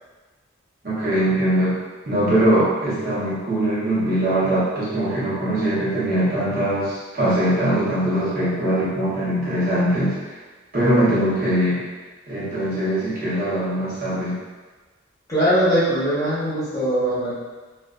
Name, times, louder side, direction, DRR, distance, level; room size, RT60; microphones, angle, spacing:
voice 1, 0.8-1.8 2.0-10.3 10.7-11.8 12.3-14.4, right 1 dB, 45° right, -10 dB, 0.8 m, -21 dB
voice 2, 15.3-17.3, equal, 15° left, -12 dB, 0.9 m, -21 dB
2.5 x 2.4 x 2.3 m, 1.3 s
head